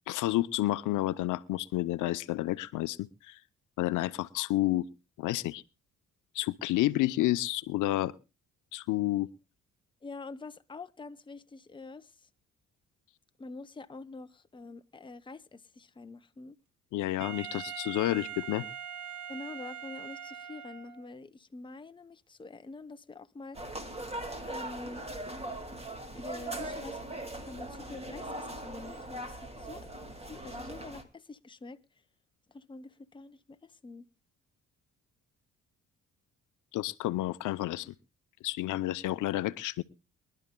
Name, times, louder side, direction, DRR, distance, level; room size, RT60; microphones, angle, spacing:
voice 1, 0.1-3.4 3.8-4.8 5.2-5.6 6.3-8.1 8.7-9.3 16.9-18.7 36.7-37.9 38.4-39.8, left 16 dB, 85° left, 0.7 m, -30 dB
voice 2, 10.0-12.3 13.4-16.6 19.3-23.6 24.5-25.1 26.1-29.9 30.2-31.8 32.5-34.1, left 3 dB, 15° left, 0.7 m, -46 dB
Wind instrument woodwind instrument, 17.2-21.1, right 8 dB, 70° right, 1.3 m, -42 dB
sound 1, 23.5-31.0, right 1 dB, 20° right, 2.2 m, -40 dB
23.0 x 11.5 x 2.2 m
cardioid pair, 90°, 30 cm